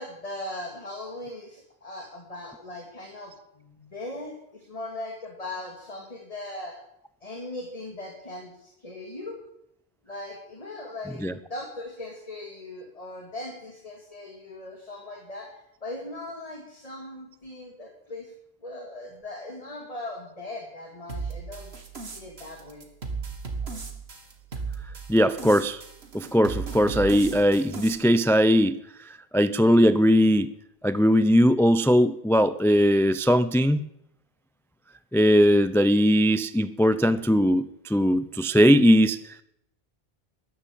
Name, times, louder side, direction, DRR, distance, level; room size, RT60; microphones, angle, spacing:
voice 1, 0.0-6.8 7.2-9.4 10.1-18.3 18.6-21.7 22.0-22.9, left 2 dB, 35° left, 2 dB, 2.3 m, -39 dB
sound 1, 21.1-27.9, right 4 dB, 90° right, 2.1 m, -36 dB
voice 2, 25.1-25.8 26.1-28.8 29.3-30.5 30.8-33.9 35.1-39.2, equal, 5° left, 14 dB, 0.3 m, -20 dB
13.0 x 11.0 x 8.9 m, 0.77 s
omnidirectional pair, 1.0 m